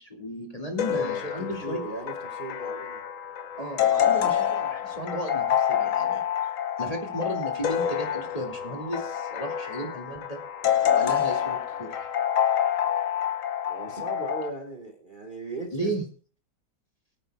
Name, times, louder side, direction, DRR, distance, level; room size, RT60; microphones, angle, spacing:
voice 1, 0.0-1.8 3.6-6.2 6.8-10.4 10.9-12.1 15.7-16.0, equal, 20° left, 1 dB, 2.2 m, -34 dB
sound 1, 0.8-14.5, left 9 dB, 55° left, 1.0 m, -27 dB
voice 2, 0.8-3.0 13.7-16.0, right 2 dB, 30° right, 1 dB, 1.7 m, -38 dB
23.5 x 9.1 x 2.2 m, 0.40 s
omnidirectional pair, 1.9 m